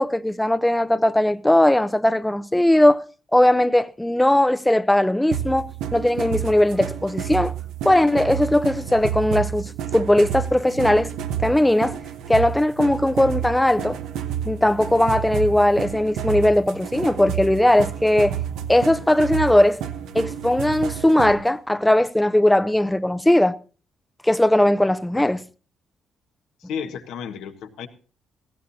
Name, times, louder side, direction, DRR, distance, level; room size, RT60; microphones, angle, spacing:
voice 1, 0.0-3.0 3.3-7.5 7.8-11.1 11.4-12.0 12.3-14.0 14.5-18.4 18.7-19.8 20.1-23.6 24.2-25.4, left 1 dB, 5° left, 0.6 m, -19 dB
sound 1, 5.3-21.5, right 9 dB, 90° right, 1.1 m, -30 dB
voice 2, 26.6-27.9, left 7 dB, 90° left, 1.4 m, -33 dB
17.0 x 15.5 x 2.7 m
cardioid pair, 90°, 0 cm